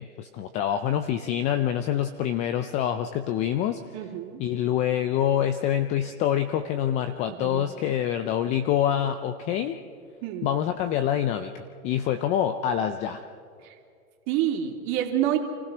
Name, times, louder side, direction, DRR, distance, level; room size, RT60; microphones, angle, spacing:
voice 1, 0.0-3.9 4.4-9.8 10.4-13.2, left 10 dB, 15° left, 10 dB, 0.4 m, -26 dB
voice 2, 3.9-4.4 7.3-7.6 10.2-10.5 13.6-13.7 14.3-15.4, right 11 dB, 40° right, 2 dB, 2.9 m, -28 dB
28.0 x 16.0 x 6.1 m, 2.3 s
hypercardioid pair, 125°, 43 cm